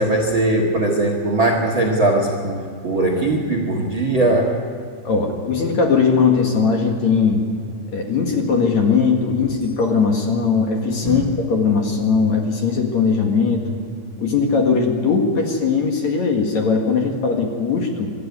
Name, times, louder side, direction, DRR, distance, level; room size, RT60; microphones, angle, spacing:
voice 1, 0.0-4.5 11.0-11.2, right 2 dB, 55° right, 2 dB, 1.3 m, -19 dB
voice 2, 5.0-7.4 7.9-13.7 14.2-18.1, left 5 dB, 50° left, 2 dB, 2.4 m, -19 dB
24.5 x 13.0 x 9.6 m, 2.3 s
omnidirectional pair, 5.2 m